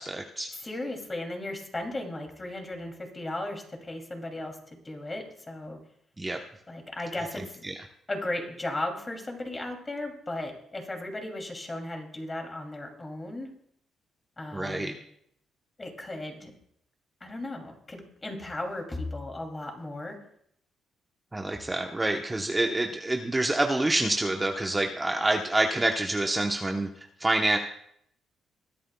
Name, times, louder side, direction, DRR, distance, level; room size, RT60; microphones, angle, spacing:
voice 1, 0.0-0.5 6.2-6.4 7.4-7.8 14.5-14.9 21.3-27.6, right 2 dB, 15° right, 3 dB, 0.9 m, -27 dB
voice 2, 0.6-4.6 4.8-5.8 6.7-7.5 8.1-13.5 14.4-15.0 15.8-16.5 17.2-20.2, left 2 dB, 25° left, 3 dB, 2.7 m, -36 dB
21.0 x 11.0 x 2.3 m, 0.70 s
cardioid pair, 90°, 0 cm